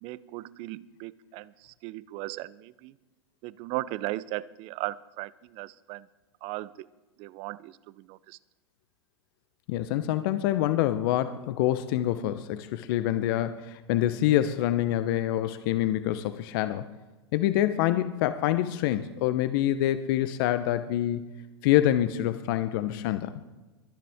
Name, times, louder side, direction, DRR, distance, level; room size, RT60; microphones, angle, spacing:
voice 1, 0.0-2.9 3.4-6.1 6.4-6.9 7.2-8.4, right 18 dB, 45° right, 20 dB, 0.6 m, -37 dB
voice 2, 9.7-16.9 17.3-21.2 21.6-23.4, left 13 dB, 55° left, 12 dB, 0.8 m, -26 dB
23.0 x 10.0 x 3.6 m, 1.1 s
hypercardioid pair, 100°, 14 cm